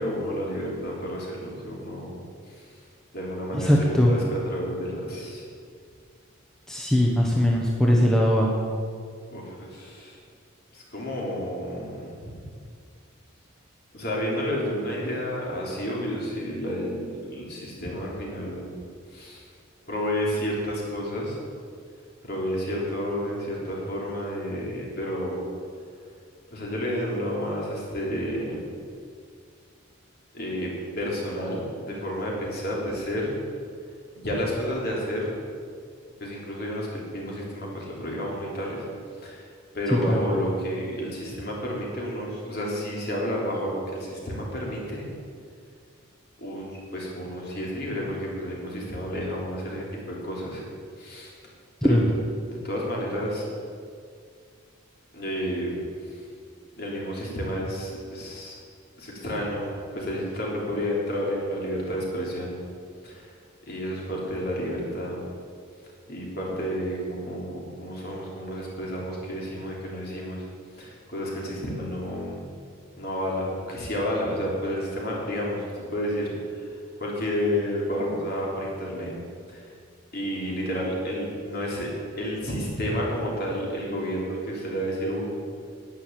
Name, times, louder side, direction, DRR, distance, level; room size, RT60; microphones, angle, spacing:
voice 1, 0.0-2.2 2.5-2.7 3.1-5.4 9.3-10.2 10.7-12.4 13.9-18.7 19.1-19.4 19.9-21.4 22.2-25.4 26.5-28.6 30.3-33.3 34.1-35.3 36.2-38.8 39.2-39.5 39.7-45.0 46.4-50.6 51.0-51.3 51.8-52.0 52.4-53.4 55.1-55.7 56.0-56.2 56.8-58.6 59.0-62.6 63.0-63.3 63.7-65.2 66.1-70.4 70.8-72.4 72.9-79.1 79.5-79.7 80.1-85.3, equal, 50° left, -3 dB, 3.4 m, -31 dB
voice 2, 3.5-4.1 6.7-8.5 40.1-40.2 51.8-52.1, equal, 5° left, -2 dB, 1.1 m, -20 dB
11.0 x 9.7 x 7.5 m, 2.2 s
head